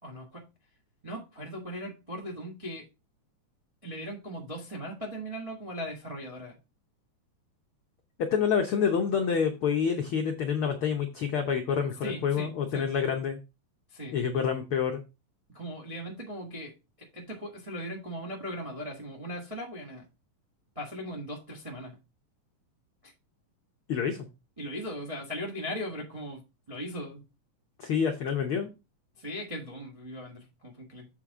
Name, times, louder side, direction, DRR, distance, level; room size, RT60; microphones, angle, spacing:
voice 1, 0.0-0.5 1.0-2.8 3.8-6.5 12.0-12.9 13.9-14.2 15.5-16.7 17.0-20.1 20.7-22.0 23.0-23.1 24.6-26.4 26.7-27.2 29.2-31.1, equal, 30° right, -1 dB, 0.6 m, -38 dB
voice 2, 8.2-13.4 14.1-15.0 23.9-24.2 27.8-28.7, left 7 dB, 80° left, 3 dB, 1.2 m, -27 dB
7.6 x 5.8 x 3.6 m, 0.28 s
omnidirectional pair, 3.7 m